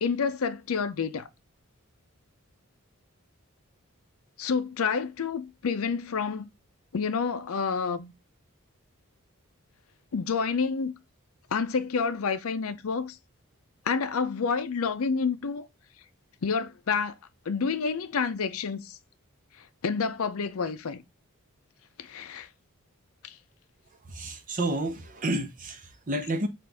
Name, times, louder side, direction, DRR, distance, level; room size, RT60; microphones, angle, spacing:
voice 1, 0.0-1.3 4.4-6.5 6.9-8.1 10.1-10.9 11.5-13.2 13.9-15.7 16.4-17.1 17.5-19.0 19.8-21.0 22.0-22.5 23.2-23.4, left 5 dB, 75° left, 0.5 m, -28 dB
voice 2, 24.0-26.5, right 1 dB, 40° right, 0.7 m, -30 dB
5.8 x 2.5 x 3.4 m
head